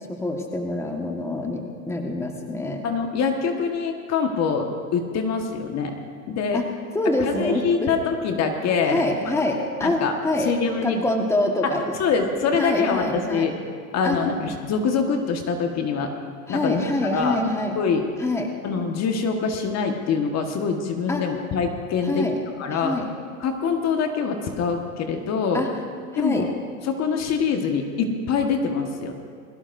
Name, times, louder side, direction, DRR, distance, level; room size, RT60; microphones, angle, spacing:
voice 1, 0.1-2.8 6.5-6.7 6.9-7.9 8.9-10.5 10.8-11.8 12.1-12.2 12.5-13.5 14.0-14.2 16.5-17.7 18.2-18.5 21.1-21.2 22.1-22.3 22.7-23.1 25.5-25.7 26.1-26.4, left 1 dB, 5° left, 2 dB, 1.5 m, -25 dB
voice 2, 2.8-6.0 6.3-6.6 7.2-9.3 9.8-11.0 11.6-13.6 13.9-16.1 16.5-17.4 17.8-18.0 18.6-22.3 22.6-23.0 23.4-25.6 26.2-26.5 26.8-29.1, left 5 dB, 40° left, 4 dB, 1.6 m, -24 dB
21.0 x 16.5 x 2.7 m, 2.2 s
hypercardioid pair, 100°, 42 cm